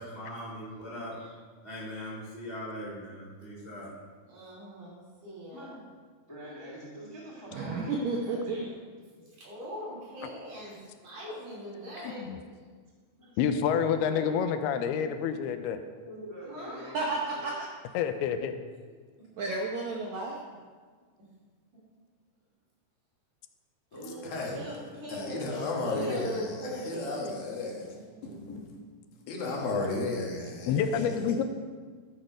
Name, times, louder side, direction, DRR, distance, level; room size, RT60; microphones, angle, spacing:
voice 1, 0.0-1.3 1.6-3.9, equal, 25° right, -5 dB, 1.2 m, -40 dB
voice 2, 4.3-5.7 9.4-10.8 11.0-12.3 16.5-17.0 24.0-24.3 24.5-27.3 27.7-28.2, equal, 55° right, -7 dB, 5.0 m, -40 dB
voice 3, 6.3-8.8 9.2-9.3 13.2-13.4 13.7-14.3 15.0-15.1 16.0-17.0 17.3-17.5 23.9-24.7 25.1-25.2 29.4-29.8, equal, 15° left, -5 dB, 0.8 m, -45 dB
voice 4, 7.5-8.6 16.9-17.7 19.4-20.4, right 3 dB, 70° right, -2 dB, 1.8 m, -32 dB
voice 5, 12.0-12.4 13.4-15.8 17.9-18.6 30.7-31.4, left 7 dB, 85° left, 9 dB, 2.6 m, -28 dB
voice 6, 24.2-24.7 25.1-28.8 29.3-31.4, left 3 dB, 70° left, -1 dB, 3.1 m, -34 dB
13.0 x 6.3 x 5.1 m, 1.5 s
omnidirectional pair, 4.5 m